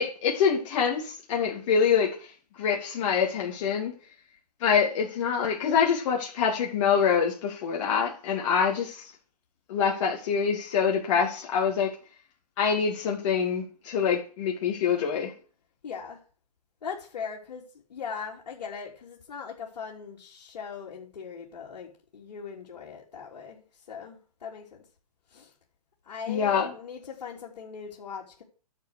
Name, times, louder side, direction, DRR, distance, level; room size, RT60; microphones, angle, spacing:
voice 1, 0.0-2.1 2.6-3.9 4.6-9.1 9.7-11.9 12.6-15.3 26.3-26.7, left 6 dB, 50° left, 2.4 m, -25 dB
voice 2, 15.8-16.2 16.8-17.6 17.9-23.6 23.9-24.8 25.3-25.5 26.1-28.4, left 6 dB, 75° left, 3.2 m, -39 dB
10.5 x 7.0 x 6.5 m
hypercardioid pair, 135°, 21 cm